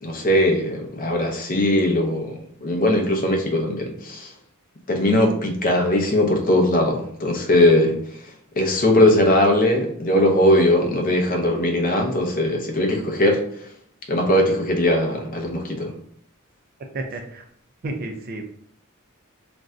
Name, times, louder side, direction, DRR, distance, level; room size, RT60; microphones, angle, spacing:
voice 1, 0.0-4.3 4.9-8.0 8.6-13.4 14.1-15.9, left 1 dB, 40° left, 2 dB, 0.5 m, -20 dB
voice 2, 16.9-17.5 17.8-18.5, right 2 dB, 45° right, 4 dB, 0.4 m, -31 dB
2.5 x 2.1 x 3.6 m, 0.66 s
head